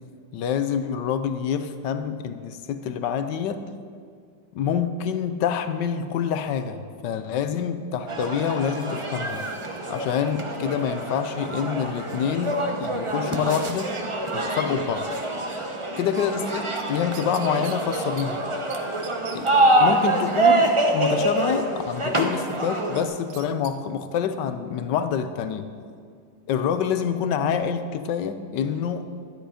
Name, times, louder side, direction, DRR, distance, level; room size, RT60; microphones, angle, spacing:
voice 1, 0.3-3.6 4.5-9.5 9.9-13.9 14.3-15.1 16.0-18.4 19.3-19.5 19.8-25.7 26.5-29.1, left 7 dB, 75° left, 10 dB, 1.4 m, -27 dB
sound 1, 8.1-23.0, right 2 dB, 25° right, 0.7 m, -25 dB
sound 2, 16.8-18.3 18.7-18.8 19.0-19.4 23.0-23.8 24.1-24.2, right 10 dB, 85° right, 1.4 m, -42 dB
12.5 x 10.5 x 5.0 m, 2.2 s
omnidirectional pair, 1.9 m